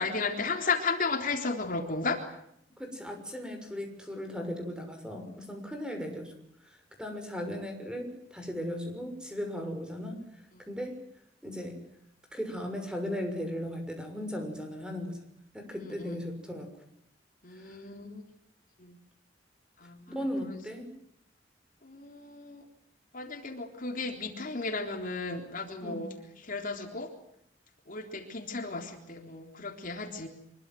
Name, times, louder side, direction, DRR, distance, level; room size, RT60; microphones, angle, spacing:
voice 1, 0.0-2.2 15.8-16.2 17.4-18.2 18.8-19.0 19.8-20.6 21.8-22.6 23.1-26.1 26.4-27.1 27.9-30.3, left 4 dB, 50° left, 4 dB, 3.7 m, -34 dB
voice 2, 2.8-6.3 7.0-10.2 10.7-11.1 11.4-11.8 12.3-15.2 15.5-16.7 17.5-17.8 20.1-20.9 25.8-26.0, equal, 5° right, 5 dB, 6.3 m, -37 dB
26.0 x 23.0 x 7.8 m, 0.75 s
head